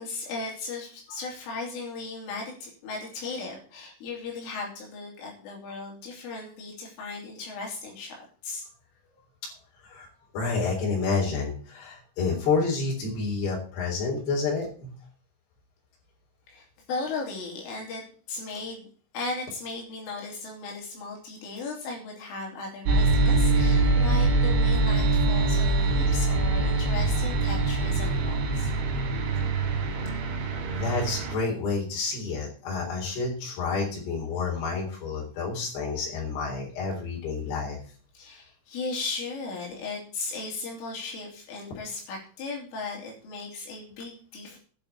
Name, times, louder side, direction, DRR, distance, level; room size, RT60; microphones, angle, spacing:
voice 1, 0.0-8.2 8.4-8.7 16.5-18.0 18.3-18.9 19.1-28.7 38.2-44.6, left 3 dB, 75° left, -1 dB, 5.7 m, -36 dB
voice 2, 10.3-14.9 30.7-37.8, left 4 dB, 55° left, -3 dB, 5.7 m, -29 dB
sound 1, 22.9-31.4, right 2 dB, 70° right, 5.0 m, -24 dB
11.0 x 7.1 x 8.5 m, 0.42 s
omnidirectional pair, 5.8 m